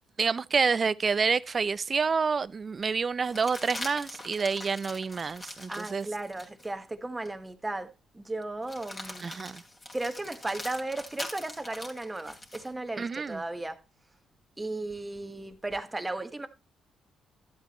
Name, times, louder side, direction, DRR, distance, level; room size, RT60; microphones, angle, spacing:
voice 1, 0.2-6.1 9.2-9.6 13.0-13.4, right 5 dB, 40° right, 0.4 m, -28 dB
sound 1, 1.7-1.8 3.2-6.7 7.2-7.4 8.6-12.7 14.9-15.8, left 2 dB, 25° left, 2.7 m, -43 dB
voice 2, 5.7-9.3 9.9-13.8 14.6-16.5, right 2 dB, 15° right, 1.1 m, -35 dB
12.0 x 8.2 x 3.0 m
cardioid pair, 90°, 0 cm